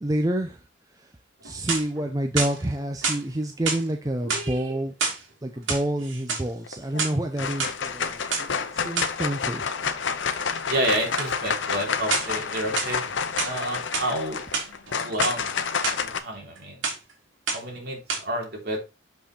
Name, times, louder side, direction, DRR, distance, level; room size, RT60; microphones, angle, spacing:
voice 1, 0.0-0.6 1.4-4.9 5.4-8.1 8.4-9.6, right 1 dB, 20° right, 5 dB, 0.6 m, -28 dB
sound 1, 1.4-2.0 2.4-3.2 3.6-3.9 4.2-5.2 5.6-6.5 6.8-7.7 8.3-8.5 9.0-9.2 11.2-11.3 12.1-12.4 12.8-13.6 13.9-14.1 14.4-15.4 15.8-16.0 16.3-16.6 16.8-17.1 17.5-17.8 18.1-18.2, right 4 dB, 80° right, 2.8 m, -28 dB
sound 2, 6.7-7.0 7.4-16.2, left 6 dB, 75° left, 0.8 m, -29 dB
voice 2, 10.7-13.0 13.4-14.4 15.0-15.6 16.0-16.8 17.5-18.8, right 1 dB, 55° right, 0 dB, 3.3 m, -29 dB
6.9 x 5.8 x 4.3 m, 0.28 s
head